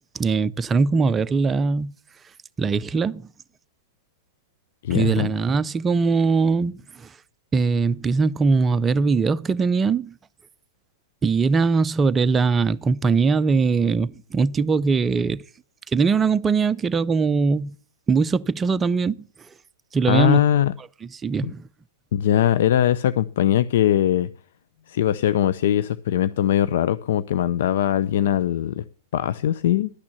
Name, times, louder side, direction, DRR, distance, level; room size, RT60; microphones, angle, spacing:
voice 1, 0.1-1.9 2.6-3.2 4.9-7.1 7.5-10.2 11.2-15.4 15.9-17.7 18.1-19.2 19.9-20.4 21.0-21.6, right 4 dB, 15° right, 0.4 m, -21 dB
voice 2, 4.8-5.3 20.1-20.7 22.1-24.3 24.9-28.8 29.1-29.9, left 11 dB, 65° left, 0.4 m, -21 dB
11.5 x 6.0 x 7.1 m
hypercardioid pair, 115°, 0 cm